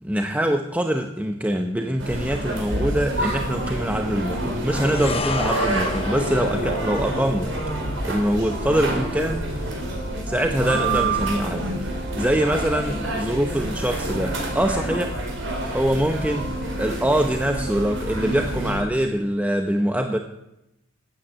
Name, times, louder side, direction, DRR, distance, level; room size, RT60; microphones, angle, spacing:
voice 1, 0.0-7.5 8.0-9.7 10.3-11.6 12.1-15.2 15.7-16.5 16.8-20.2, right 1 dB, 10° right, 4 dB, 0.8 m, -24 dB
sound 1, 2.0-18.8, right 1 dB, 90° right, 4.6 m, -27 dB
sound 2, 4.9-13.4 13.6-13.8, left 3 dB, 30° left, 1.0 m, -35 dB
13.0 x 9.4 x 9.2 m, 0.89 s
head